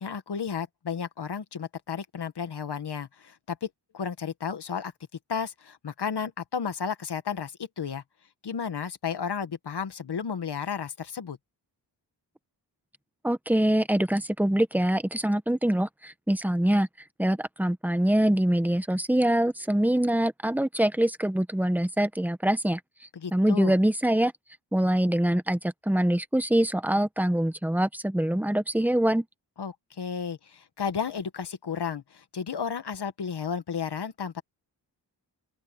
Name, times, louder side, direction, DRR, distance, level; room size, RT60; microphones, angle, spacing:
voice 1, 0.0-4.9 5.3-8.0 8.4-11.4 23.1-23.7 29.6-34.4, left 6 dB, 65° left, 1.8 m, -33 dB
voice 2, 13.2-16.9 17.2-22.8 23.3-24.3 24.7-29.2, right 1 dB, 5° right, 1.0 m, -24 dB
open air
wide cardioid pair, 90°, 44 cm